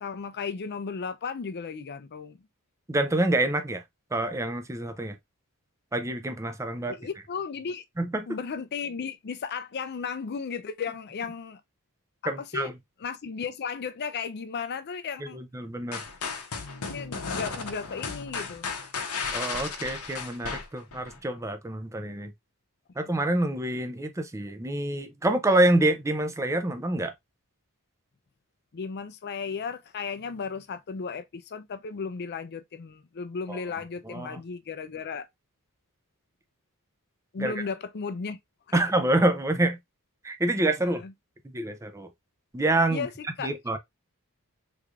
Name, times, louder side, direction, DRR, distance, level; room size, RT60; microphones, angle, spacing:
voice 1, 0.0-2.4 5.0-5.1 6.9-7.8 8.3-11.6 12.2-12.7 13.0-15.4 16.9-18.7 28.7-35.3 37.3-38.4 38.7-38.8 40.8-41.1 42.9-43.1 43.4-43.5, left 5 dB, 50° left, 0.5 m, -35 dB
voice 2, 2.9-3.8 4.1-5.2 5.9-6.9 8.0-8.4 12.3-12.7 15.2-16.0 19.3-22.3 23.0-27.1 33.5-33.6 34.1-34.4 37.4-37.5 38.7-39.8 40.2-41.0 41.4-42.1 42.5-43.1 43.4-43.8, right 1 dB, 15° right, 0.5 m, -27 dB
sound 1, 15.9-21.2, left 5 dB, 85° left, 0.9 m, -34 dB
3.5 x 3.2 x 2.4 m
head